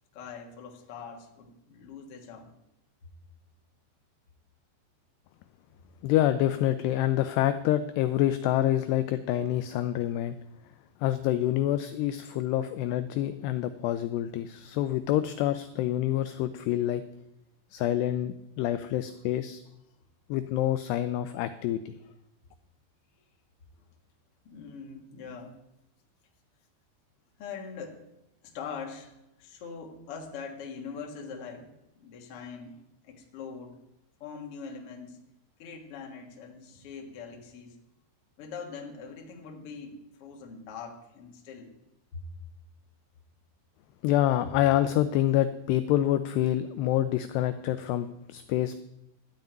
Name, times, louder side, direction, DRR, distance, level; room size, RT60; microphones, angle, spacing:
voice 1, 0.1-2.5 3.0-3.1 23.8-23.9 24.4-25.6 27.4-28.0 28.4-33.8 34.2-35.2 35.6-37.8 38.4-41.7 42.1-42.2, left 5 dB, 65° left, 1 dB, 1.4 m, -42 dB
voice 2, 6.0-10.4 11.0-17.0 17.7-19.6 20.3-21.9 44.0-48.8, left 13 dB, 85° left, 11 dB, 2.4 m, -27 dB
13.0 x 5.8 x 9.1 m, 0.87 s
omnidirectional pair, 5.4 m